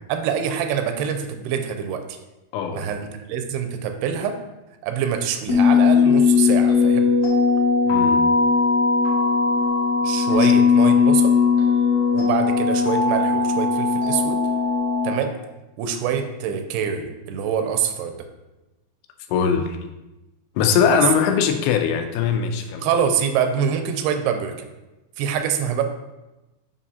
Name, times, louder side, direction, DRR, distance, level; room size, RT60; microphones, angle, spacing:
voice 1, 0.1-2.2 2.7-4.4 4.8-7.1 10.0-11.3 12.1-14.4 15.0-15.3 15.8-18.2 20.9-21.0 22.8-24.5 25.2-25.8, right 7 dB, 90° right, 6 dB, 2.6 m, -25 dB
voice 2, 2.5-2.8 7.9-8.3 10.4-10.5 19.3-19.8 20.6-22.9, left 7 dB, 90° left, 5 dB, 2.6 m, -21 dB
sound 1, 5.5-15.1, left 5 dB, 50° left, 1.9 m, -18 dB
7.6 x 5.4 x 2.8 m, 1.0 s
omnidirectional pair, 4.6 m